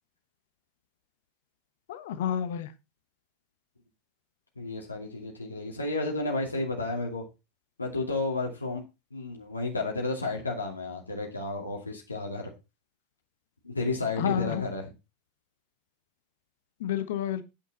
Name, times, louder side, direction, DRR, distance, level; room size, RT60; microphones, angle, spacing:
voice 1, 1.9-2.7 14.2-14.6 16.8-17.4, left 10 dB, 60° left, 1.2 m, -30 dB
voice 2, 4.6-7.2 7.8-8.8 9.1-12.5 13.6-14.9, left 3 dB, 80° left, 2.4 m, -32 dB
9.1 x 8.5 x 4.1 m
figure-of-eight pair, 85°, 0 cm